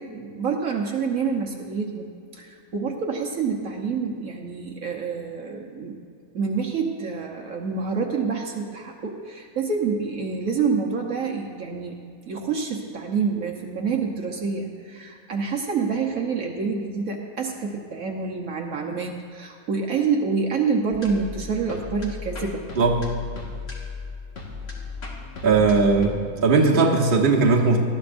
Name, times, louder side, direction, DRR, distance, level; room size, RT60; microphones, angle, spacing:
voice 1, 0.0-2.1 2.3-6.0 6.3-11.9 12.3-22.6, right 5 dB, 70° right, 0 dB, 1.4 m, -27 dB
sound 1, 20.9-26.1, left 4 dB, 45° left, 1.9 m, -36 dB
voice 2, 25.4-27.8, right 4 dB, 35° right, -1 dB, 1.4 m, -18 dB
18.5 x 13.0 x 2.6 m, 2.3 s
omnidirectional pair, 1.5 m